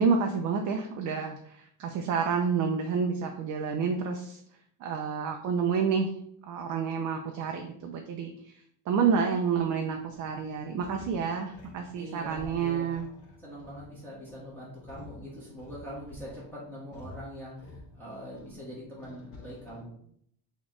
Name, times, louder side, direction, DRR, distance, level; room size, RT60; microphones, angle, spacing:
voice 1, 0.0-4.4 4.8-6.1 6.5-8.5 8.9-13.1, right 6 dB, 45° right, 3 dB, 0.4 m, -29 dB
sound 1, 9.9-19.8, left 2 dB, 60° left, 1.6 m, -50 dB
voice 2, 12.0-13.0 13.4-19.9, equal, 5° left, -9 dB, 1.2 m, -43 dB
3.9 x 3.0 x 3.7 m, 0.66 s
cardioid pair, 155°, 46 cm